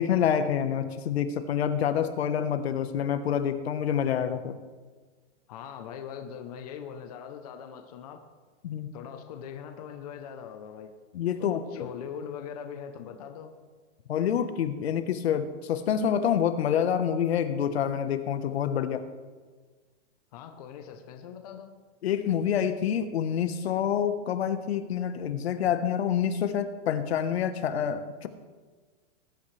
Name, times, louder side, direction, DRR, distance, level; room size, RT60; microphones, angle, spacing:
voice 1, 0.0-4.6 8.6-8.9 11.1-11.9 14.1-19.0 22.0-28.3, left 8 dB, 60° left, 10 dB, 1.2 m, -27 dB
voice 2, 5.5-8.2 8.9-10.9 11.4-13.5 20.3-21.7, left 8 dB, 35° left, 5 dB, 0.8 m, -41 dB
20.0 x 10.5 x 3.3 m, 1.4 s
supercardioid pair, 180°, 35 cm